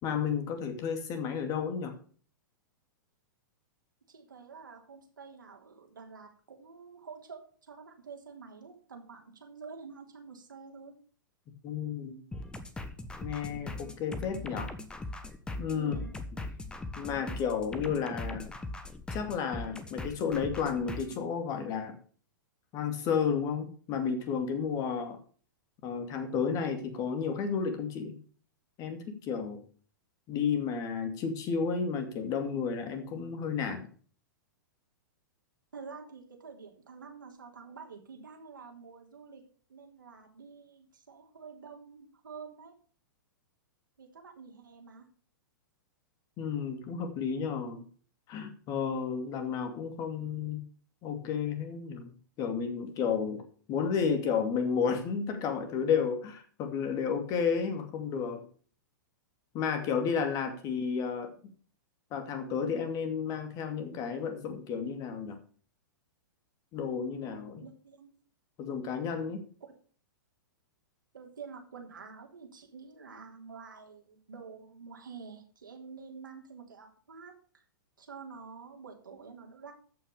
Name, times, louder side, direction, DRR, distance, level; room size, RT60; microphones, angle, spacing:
voice 1, 0.0-1.9 11.6-12.2 13.2-14.7 15.6-15.9 17.0-18.5 19.1-22.0 22.7-25.2 25.8-28.2 28.8-29.6 30.3-33.8 46.4-47.9 48.3-50.6 51.0-52.1 52.4-53.4 53.7-58.5 59.5-61.3 62.1-65.4 66.7-67.6 68.6-69.4, left 6 dB, 35° left, 7 dB, 2.4 m, -32 dB
voice 2, 4.1-10.9 15.7-16.2 35.7-39.4 39.7-42.7 44.0-45.0 60.6-60.7 67.6-68.2 71.1-77.6 78.0-79.7, right 5 dB, 75° right, 2 dB, 3.2 m, -48 dB
sound 1, 12.3-21.2, left 2 dB, 10° left, 1.2 m, -40 dB
13.5 x 6.0 x 6.6 m, 0.43 s
figure-of-eight pair, 105°, 11 cm